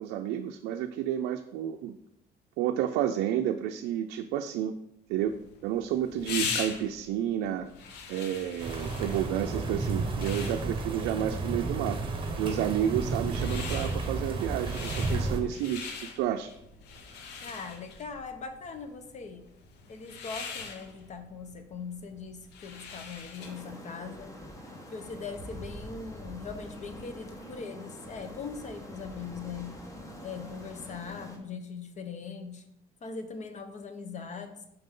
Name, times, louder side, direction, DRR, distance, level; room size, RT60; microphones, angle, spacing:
voice 1, 0.0-1.9 2.6-4.7 5.1-5.3 5.6-7.7 8.1-12.0 12.4-15.9 16.1-16.5, right 10 dB, 90° right, 6 dB, 0.4 m, -30 dB
sound 1, 5.2-23.7, left 5 dB, 80° left, 0.9 m, -42 dB
sound 2, 8.6-15.4, right 3 dB, 30° right, 1.1 m, -32 dB
voice 2, 17.4-19.5 19.9-24.3 24.7-29.8 30.2-32.6 33.0-34.6, left 5 dB, 45° left, 8 dB, 0.9 m, -41 dB
sound 3, 23.4-31.4, equal, 20° left, 1.1 m, -45 dB
5.9 x 5.2 x 3.7 m, 0.79 s
cardioid pair, 110°, 17 cm